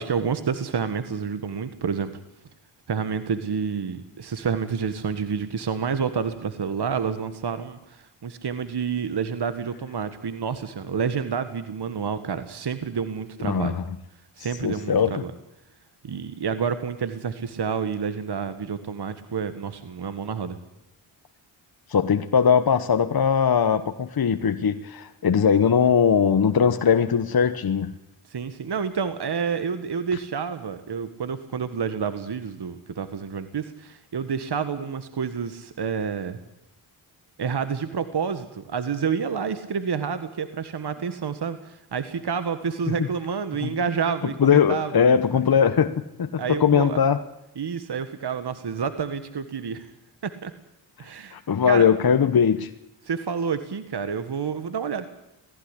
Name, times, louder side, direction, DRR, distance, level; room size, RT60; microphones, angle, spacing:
voice 1, 0.0-2.1 2.9-13.8 14.4-15.3 16.0-20.6 28.3-36.4 37.4-45.4 46.4-47.0 47.6-49.9 50.2-50.5 51.0-51.4 51.7-51.9 53.0-55.1, right 6 dB, 50° right, 11 dB, 1.6 m, -29 dB
voice 2, 13.5-13.8 14.6-15.2 21.9-27.9 42.9-43.0 43.6-43.7 44.4-47.2 51.3-52.7, left 7 dB, 45° left, 9 dB, 1.2 m, -20 dB
18.5 x 15.5 x 9.9 m, 0.88 s
cardioid pair, 50°, 49 cm